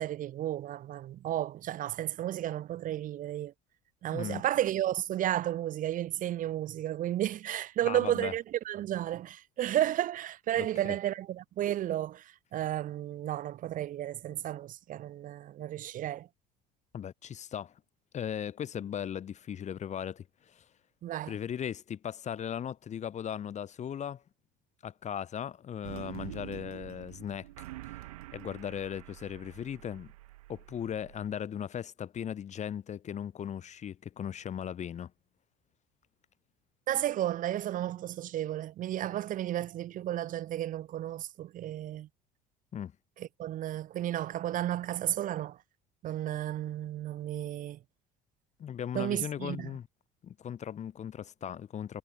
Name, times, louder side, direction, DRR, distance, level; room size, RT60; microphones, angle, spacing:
voice 1, 0.0-3.5 4.0-16.3 21.0-21.3 36.9-42.1 43.2-45.6 46.0-47.8 48.9-49.7, right 12 dB, 50° right, 0.7 m, -33 dB
voice 2, 7.8-8.3 10.6-11.0 16.9-17.7 18.1-20.6 21.3-24.2 24.8-27.5 27.8-27.9 28.3-30.1 30.5-35.1 42.7-42.9 48.6-49.9 50.2-52.0, left 9 dB, 40° left, 1.2 m, -38 dB
sound 1, 25.8-31.4, right 17 dB, 85° right, 7.2 m, -46 dB
hypercardioid pair, 75°, 18 cm